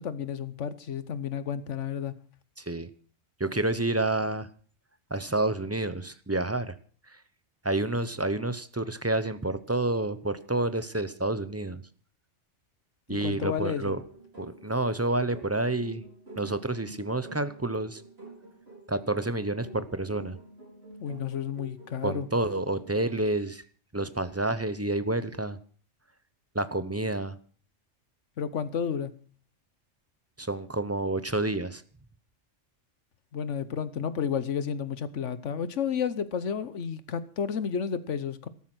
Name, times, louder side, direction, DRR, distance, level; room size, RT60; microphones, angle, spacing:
voice 1, 0.0-2.2 13.1-14.0 21.0-22.3 28.4-29.1 33.3-38.5, left 7 dB, 75° left, 1.3 m, -31 dB
voice 2, 2.6-2.9 3.4-4.5 5.1-6.7 7.1-7.2 7.6-11.8 13.1-14.0 14.4-16.0 16.4-18.0 18.9-20.4 22.0-23.6 23.9-25.6 26.5-27.4 30.4-31.8, right 2 dB, 15° right, 0.8 m, -29 dB
sound 1, 13.4-23.3, right 1 dB, 55° right, 6.4 m, -48 dB
13.5 x 13.0 x 6.2 m
omnidirectional pair, 1.3 m